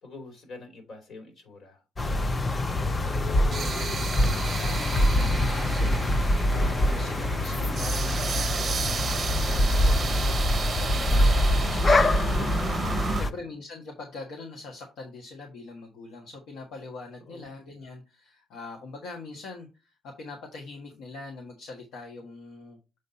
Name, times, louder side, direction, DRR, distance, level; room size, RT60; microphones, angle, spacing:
voice 1, 0.0-1.8 17.3-17.4, left 2 dB, 65° left, 3.3 m, -45 dB
sound 1, 2.0-13.3, left 1 dB, 30° left, 0.6 m, -24 dB
voice 2, 2.5-22.8, left 3 dB, 85° left, 1.5 m, -43 dB
sound 2, 2.6-13.2, right 6 dB, 45° right, 0.7 m, -34 dB
7.2 x 4.0 x 4.1 m
cardioid pair, 90°, 0 cm